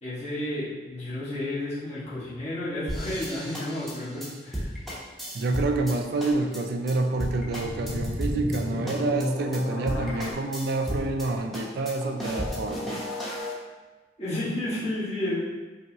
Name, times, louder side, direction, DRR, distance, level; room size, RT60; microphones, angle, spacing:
voice 1, 0.0-4.7 14.2-15.4, left 1 dB, 40° left, -11 dB, 1.4 m, -31 dB
sound 1, 2.9-5.9 6.2-6.6 6.9-7.0 7.2-8.6 8.9-9.2 9.5-9.6 9.9-11.3 11.5-13.5, equal, ahead, 0.8 m, -34 dB
voice 2, 5.3-13.0, right 2 dB, 60° right, 4 dB, 0.4 m, -28 dB
sound 2, 7.5-10.3, left 1 dB, 80° left, 0.6 m, -33 dB
5.2 x 2.8 x 2.8 m, 1.2 s
head